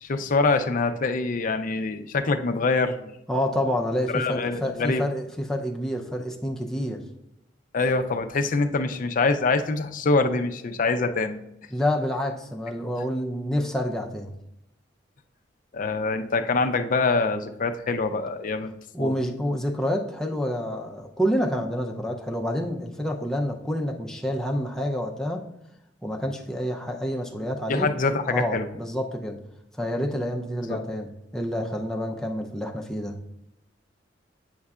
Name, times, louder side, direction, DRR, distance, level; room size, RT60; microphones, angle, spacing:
voice 1, 0.0-3.1 4.1-5.0 7.7-11.4 15.7-18.7 19.0-19.1 27.7-28.7 30.7-30.8, left 3 dB, 45° left, 8 dB, 0.5 m, -24 dB
voice 2, 3.3-7.0 11.7-14.3 18.9-25.4 26.0-27.9 28.3-29.4 29.8-33.1, equal, 5° left, 0 dB, 0.6 m, -28 dB
8.6 x 5.4 x 2.4 m, 0.82 s
head